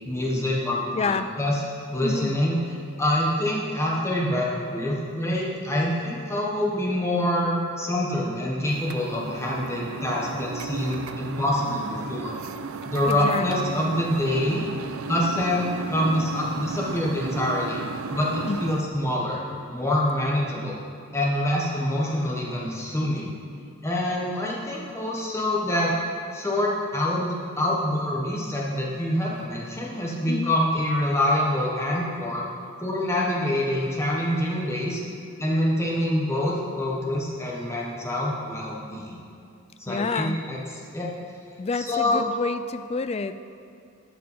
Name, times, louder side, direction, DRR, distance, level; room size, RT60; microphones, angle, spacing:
voice 1, 0.1-1.6 1.9-2.6 3.0-12.3 12.8-14.6 15.1-17.8 18.1-19.4 19.7-20.8 21.1-23.3 23.8-25.9 26.3-32.4 32.8-35.0 35.4-39.2 39.8-40.6 40.9-41.1 41.8-42.2, left 1 dB, 15° left, -4 dB, 1.2 m, -26 dB
voice 2, 0.9-1.3 2.0-2.4 13.0-13.9 18.4-18.7 30.3-30.6 39.9-40.4 41.6-43.3, left 4 dB, 30° left, 11 dB, 0.3 m, -29 dB
sound 1, 8.7-18.9, right 5 dB, 75° right, 0.4 m, -35 dB
12.5 x 5.4 x 5.6 m, 2.4 s
head